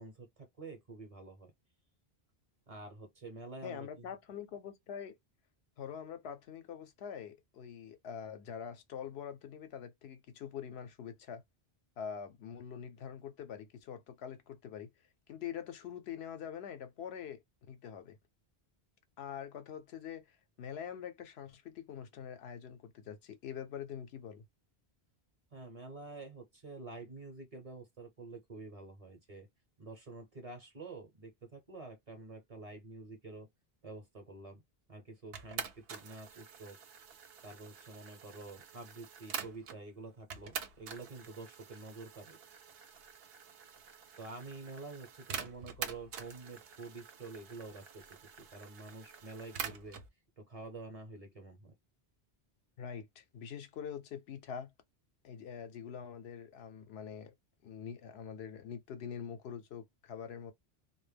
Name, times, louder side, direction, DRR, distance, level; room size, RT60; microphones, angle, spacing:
voice 1, 0.0-1.5 2.7-4.1 25.5-29.5 29.8-33.5 33.8-34.6 34.9-36.8 37.4-42.4 44.2-48.1 48.4-50.0 50.4-51.7, right 3 dB, 40° right, 0.7 m, -48 dB
voice 2, 3.6-5.2 5.8-11.4 12.0-14.9 15.3-18.2 19.2-24.4 52.8-54.7 55.2-57.3 57.6-60.5, left 8 dB, 80° left, 0.8 m, -44 dB
sound 1, 35.3-39.8 40.3-50.1, right 7 dB, 70° right, 0.8 m, -46 dB
2.1 x 2.0 x 3.2 m
omnidirectional pair, 1.1 m